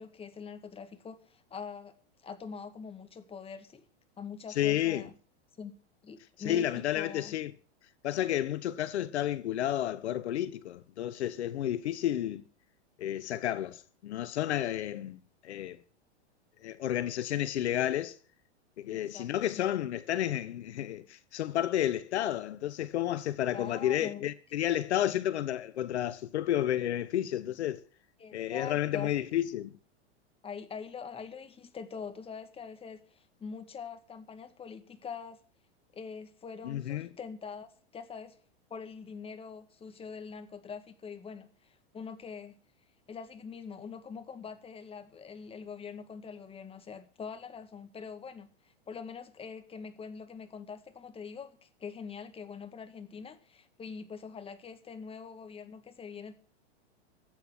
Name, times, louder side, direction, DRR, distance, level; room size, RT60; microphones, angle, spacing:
voice 1, 0.0-1.9 2.2-3.8 4.2-5.1 5.6-5.7 6.0-7.4 18.9-19.6 23.5-24.3 28.2-29.1 30.4-35.4 35.9-38.4 38.7-42.5 43.1-56.3, left 6 dB, 15° left, 1.8 m, -44 dB
voice 2, 4.6-5.1 6.4-7.5 8.0-12.4 13.0-15.8 16.6-18.2 18.8-27.8 28.3-29.7 36.6-37.1, left 12 dB, 80° left, 1.1 m, -31 dB
14.0 x 9.1 x 7.5 m
hypercardioid pair, 130°, 33 cm